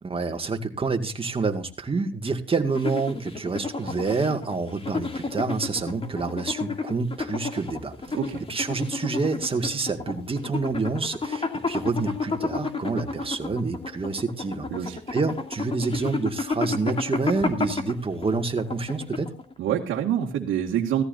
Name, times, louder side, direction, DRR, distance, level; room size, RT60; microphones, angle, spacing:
voice 1, 0.0-8.2 8.5-14.7 15.1-19.3, right 4 dB, 30° right, 6 dB, 2.1 m, -28 dB
sound 1, 2.7-19.5, left 4 dB, 30° left, 2.5 m, -31 dB
voice 2, 14.7-15.2 19.6-21.0, right 9 dB, 85° right, -1 dB, 1.9 m, -26 dB
17.0 x 14.0 x 2.7 m, 0.34 s
cardioid pair, 90°, 20 cm